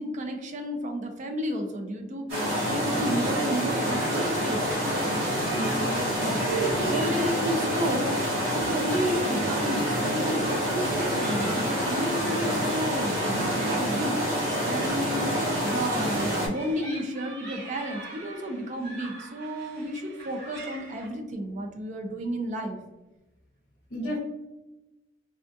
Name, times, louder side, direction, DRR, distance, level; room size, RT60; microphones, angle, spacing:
voice 1, 0.0-4.7 5.9-6.1 6.9-8.1 8.5-22.8 24.0-24.2, equal, 40° right, 4 dB, 0.4 m, -32 dB
sound 1, 2.3-16.5, equal, 75° right, 1.5 m, -27 dB
sound 2, 3.2-21.1, right 2 dB, 55° right, 0.8 m, -44 dB
voice 2, 5.5-6.9 23.9-24.2, right 3 dB, 55° left, -5 dB, 0.7 m, -32 dB
3.5 x 2.3 x 2.6 m, 1.0 s
head